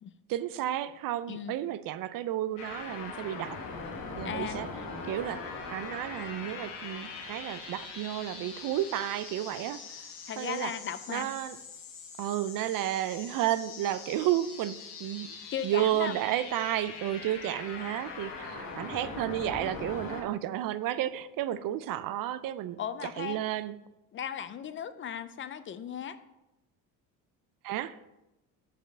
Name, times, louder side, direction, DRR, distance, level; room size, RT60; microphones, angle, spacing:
voice 1, 0.3-3.6 4.2-4.7 5.1-9.8 10.4-10.7 11.1-11.6 12.2-23.8 27.6-28.0, right 12 dB, 60° right, 14 dB, 0.5 m, -32 dB
sound 1, 2.6-20.2, left 4 dB, 85° left, 1.5 m, -42 dB
voice 2, 4.2-4.6 10.3-11.3 15.5-16.2 22.8-23.4 24.1-26.2, left 8 dB, 35° left, 13 dB, 0.4 m, -36 dB
5.6 x 5.1 x 6.5 m, 0.95 s
cardioid pair, 125°, 37 cm